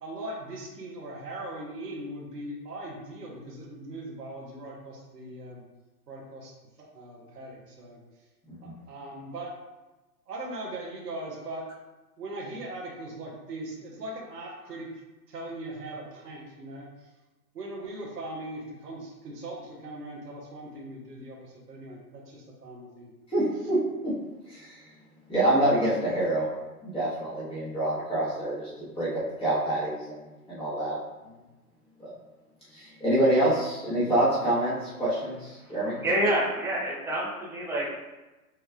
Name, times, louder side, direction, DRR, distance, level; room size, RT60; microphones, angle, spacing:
voice 1, 0.0-5.6 6.1-6.5 6.8-8.0 8.6-9.5 10.3-11.6 12.2-14.9 15.3-17.1 17.5-23.1, right 1 dB, 85° right, -3 dB, 1.2 m, -40 dB
voice 2, 23.3-24.1 24.5-24.9 25.3-26.5 26.8-31.0 32.0-32.1 32.7-35.9, right 1 dB, 10° left, -10 dB, 1.4 m, -27 dB
voice 3, 36.0-37.8, right 1 dB, 5° right, -7 dB, 0.8 m, -27 dB
6.2 x 3.2 x 2.4 m, 1.1 s
hypercardioid pair, 135°, 47 cm